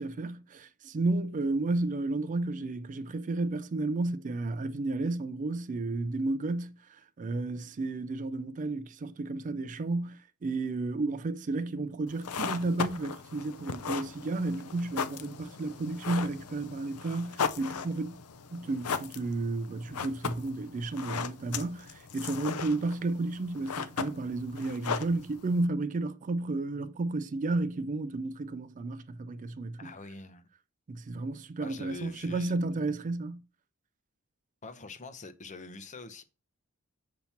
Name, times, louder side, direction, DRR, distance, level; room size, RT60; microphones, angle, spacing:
voice 1, 0.0-18.2 18.5-29.9 30.9-33.4, right 2 dB, 35° right, 0.4 m, -32 dB
sound 1, 12.1-25.7, left 6 dB, 85° left, 0.6 m, -37 dB
voice 2, 29.8-30.4 31.6-32.5 34.6-36.2, left 3 dB, 35° left, 0.7 m, -44 dB
6.9 x 2.9 x 5.7 m
head